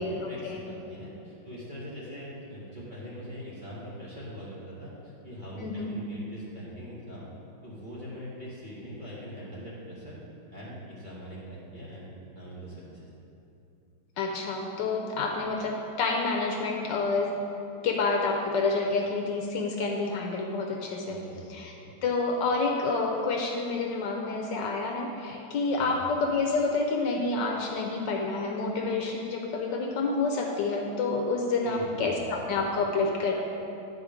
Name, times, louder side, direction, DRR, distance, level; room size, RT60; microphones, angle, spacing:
voice 1, 0.0-7.3 7.6-10.2 10.5-13.1 21.1-21.4 21.7-21.9 25.8-26.0 31.6-32.2, equal, 30° right, -8 dB, 1.1 m, -42 dB
voice 2, 5.6-5.9 14.2-17.3 17.8-21.2 21.5-21.7 22.0-33.4, left 3 dB, 70° left, 1 dB, 1.2 m, -28 dB
9.5 x 4.4 x 4.9 m, 2.8 s
omnidirectional pair, 2.2 m